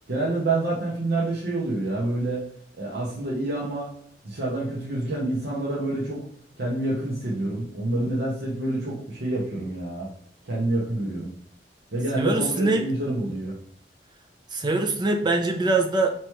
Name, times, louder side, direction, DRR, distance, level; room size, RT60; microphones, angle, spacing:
voice 1, 0.1-2.4 2.8-3.9 4.2-6.2 6.6-10.1 10.5-11.3 11.9-13.5, right 2 dB, 60° right, -5 dB, 0.9 m, -27 dB
voice 2, 12.2-12.9 14.5-16.1, right 2 dB, 25° right, 4 dB, 0.5 m, -23 dB
4.6 x 3.0 x 3.0 m, 0.63 s
head